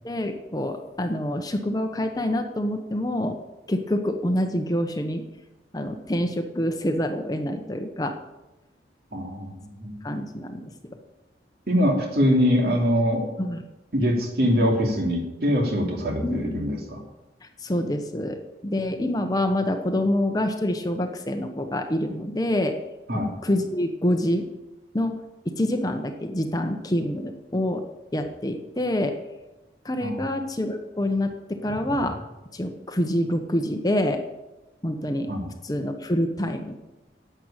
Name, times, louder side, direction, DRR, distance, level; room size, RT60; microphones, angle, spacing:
voice 1, 0.0-3.4 3.7-5.2 5.7-8.1 10.0-10.7 13.4-13.6 16.2-16.6 17.6-22.7 23.4-24.5 24.9-25.2 25.6-27.8 28.1-29.2 29.8-32.2 32.5-34.2 34.8-35.3 35.6-36.8, left 1 dB, 20° left, 6 dB, 0.9 m, -26 dB
voice 2, 9.1-10.0 11.7-13.3 13.9-17.0 23.1-23.3 30.0-30.2 35.3-35.5, equal, 60° right, 1 dB, 2.8 m, -23 dB
11.0 x 7.9 x 8.8 m, 1.0 s
head